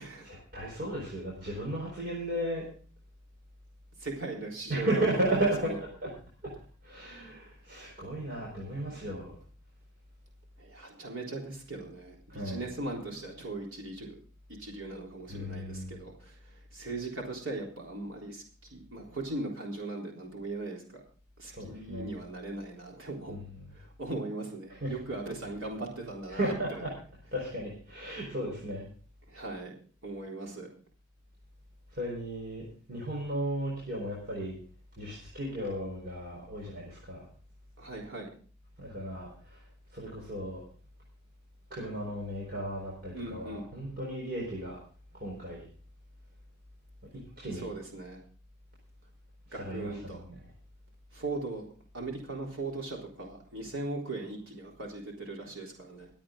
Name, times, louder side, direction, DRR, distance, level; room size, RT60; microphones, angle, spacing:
voice 1, 0.2-2.7 4.7-6.1 6.4-6.5 6.8-9.4 12.3-12.7 15.3-16.0 21.4-22.1 23.3-23.8 24.7-25.0 26.3-27.0 27.3-28.8 31.9-34.6 35.0-37.3 38.8-39.6 39.9-40.6 41.7-44.8 45.1-45.7 47.1-47.7 49.5-50.5, right 1 dB, 50° right, -4 dB, 4.3 m, -35 dB
voice 2, 4.0-5.8 10.6-14.2 14.6-21.0 21.4-23.4 23.7-26.8 29.3-29.8 30.0-30.7 37.8-38.3 43.1-43.7 47.6-48.2 49.5-50.2 51.1-51.7 51.9-56.1, right 2 dB, 75° right, -1 dB, 3.7 m, -39 dB
23.0 x 8.6 x 3.8 m, 0.41 s
head